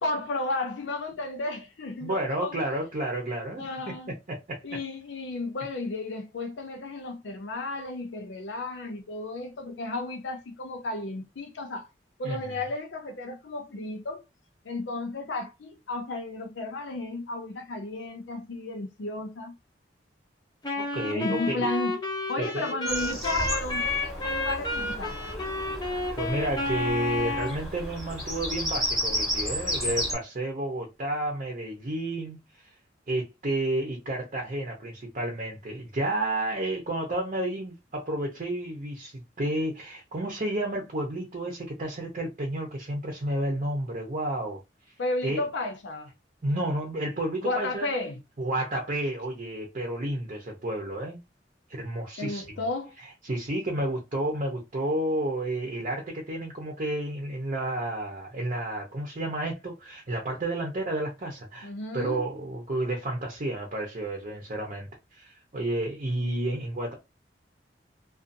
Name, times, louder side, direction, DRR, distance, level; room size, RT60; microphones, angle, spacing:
voice 1, 0.0-2.6 3.6-4.1 4.6-11.9 12.2-14.2 14.6-19.5 21.1-22.0 22.3-25.2 45.0-46.1 47.4-48.2 52.2-52.9 61.6-62.2, left 2 dB, 85° left, 0.5 m, -33 dB
voice 2, 2.0-3.7 4.3-4.6 12.2-12.6 20.8-21.7 22.4-22.7 26.2-32.4 33.1-44.6 45.2-45.4 46.4-47.9 48.4-51.2 51.7-52.4 53.2-66.9, right 1 dB, 45° right, 0.7 m, -31 dB
Wind instrument woodwind instrument, 20.6-27.6, left 2 dB, 25° left, 0.6 m, -31 dB
Bird vocalization bird call bird song, 22.9-30.1, equal, ahead, 0.9 m, -33 dB
2.5 x 2.4 x 2.6 m
head